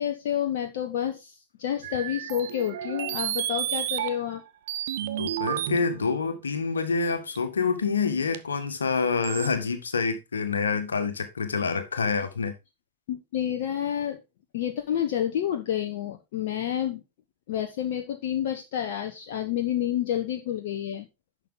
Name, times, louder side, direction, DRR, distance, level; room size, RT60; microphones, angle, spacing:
voice 1, 0.0-4.4 13.1-14.2 14.5-17.0 17.5-21.1, left 10 dB, 55° left, 1.1 m, -29 dB
sound 1, 1.8-4.4 4.7-6.2 7.4-7.5 8.3-8.4 9.2-9.5, right 12 dB, 55° right, 0.9 m, -31 dB
voice 2, 5.2-12.5, left 5 dB, 70° left, 1.7 m, -27 dB
11.0 x 6.4 x 3.8 m
figure-of-eight pair, 90°, 0 cm